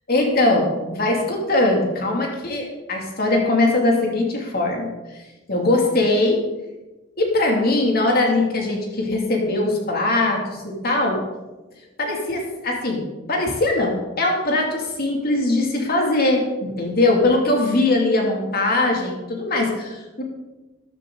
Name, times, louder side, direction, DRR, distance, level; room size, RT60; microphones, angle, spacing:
voice 1, 0.1-4.9 5.5-6.4 7.2-11.2 12.0-20.2, left 2 dB, 50° left, 0 dB, 2.6 m, -21 dB
13.5 x 10.5 x 3.9 m, 1.1 s
head